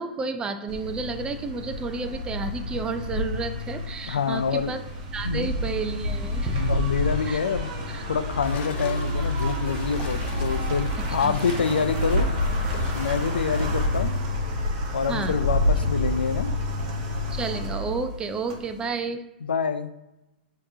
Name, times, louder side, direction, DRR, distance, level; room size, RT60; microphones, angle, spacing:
voice 1, 0.0-4.8 5.1-6.6 7.3-7.4 7.9-8.1 11.2-11.3 15.1-15.4 17.3-19.2, right 4 dB, 15° right, 7 dB, 0.4 m, -31 dB
sound 1, 0.7-18.8, left 1 dB, 45° right, 1.0 m, -28 dB
voice 2, 4.1-4.7 5.2-5.5 6.5-7.7 8.1-12.3 12.9-14.1 14.9-16.5 19.4-19.9, left 6 dB, 85° left, 10 dB, 0.4 m, -26 dB
sound 2, 8.4-13.7, left 5 dB, 30° left, 0.7 m, -43 dB
6.4 x 2.9 x 2.7 m, 0.98 s
hypercardioid pair, 125°, 5 cm